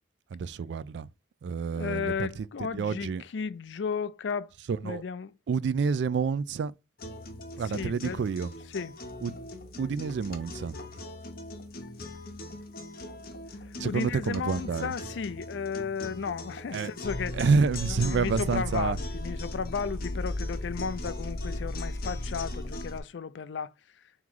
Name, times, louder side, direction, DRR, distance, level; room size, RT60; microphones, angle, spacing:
voice 1, 0.3-1.1 1.4-2.0 2.8-3.2 4.9-5.0 5.5-6.7 7.6-8.5 9.2-9.3 9.8-10.7 13.8-14.9 16.7-16.9 17.4-19.0, right 5 dB, 65° right, 0.3 m, -28 dB
voice 2, 1.7-4.5 4.8-5.3 7.6-8.3 8.6-9.0 13.6-17.4 17.9-23.7, left 5 dB, 70° left, 0.4 m, -34 dB
sound 1, 7.0-23.0, left 2 dB, 50° left, 0.9 m, -41 dB
sound 2, 17.0-23.0, left 1 dB, 15° left, 0.7 m, -35 dB
3.6 x 3.0 x 3.7 m
head